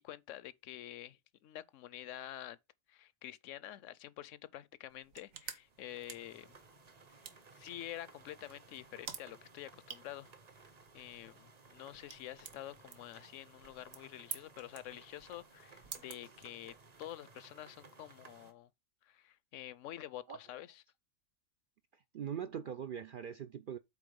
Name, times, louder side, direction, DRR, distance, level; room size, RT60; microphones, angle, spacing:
voice 1, 0.0-2.6 2.9-6.5 7.6-10.3 10.9-18.7 19.0-20.8, left 13 dB, 75° left, 0.9 m, -48 dB
sound 1, 4.9-17.0, right 7 dB, 85° right, 1.4 m, -52 dB
sound 2, 5.6-18.5, right 4 dB, 35° right, 0.9 m, -60 dB
voice 2, 21.9-23.8, right 8 dB, 65° right, 0.5 m, -42 dB
8.4 x 3.6 x 5.1 m
omnidirectional pair, 1.3 m